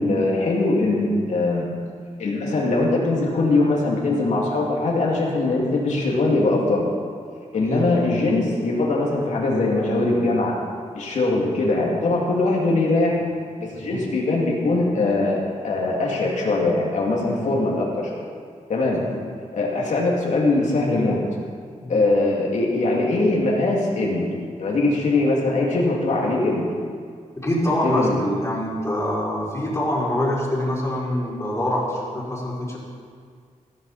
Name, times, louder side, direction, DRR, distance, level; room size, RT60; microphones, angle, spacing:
voice 1, 0.0-1.6 2.2-6.9 7.5-10.5 10.9-13.1 13.6-18.2 18.7-19.0 19.5-21.2 21.9-24.3 24.6-26.7 27.8-28.2, left 2 dB, 70° left, -3 dB, 2.7 m, -21 dB
voice 2, 27.4-32.8, left 1 dB, 20° left, -6 dB, 4.4 m, -25 dB
15.5 x 14.0 x 4.3 m, 2.1 s
wide cardioid pair, 140°, 13 cm